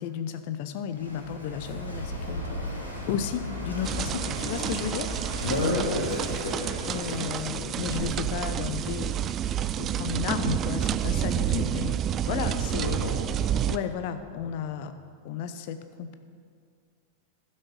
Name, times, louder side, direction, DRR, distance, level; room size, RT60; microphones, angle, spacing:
voice 1, 0.0-2.5 3.1-5.1 6.9-9.2 9.6-12.0 12.2-13.1 13.7-14.9 15.2-16.1, left 8 dB, 50° left, 10 dB, 0.7 m, -33 dB
Walk footsteps / Wind / Waves surf, 0.9-7.5, equal, 90° left, 2.1 m, -36 dB
sound 1, 3.8-13.8, right 10 dB, 30° right, 0.3 m, -29 dB
voice 2, 5.4-7.2 12.3-13.8 14.4-14.5, left 2 dB, 65° left, -6 dB, 1.7 m, -32 dB
11.5 x 6.4 x 5.3 m, 2.1 s
figure-of-eight pair, 90°, 0 cm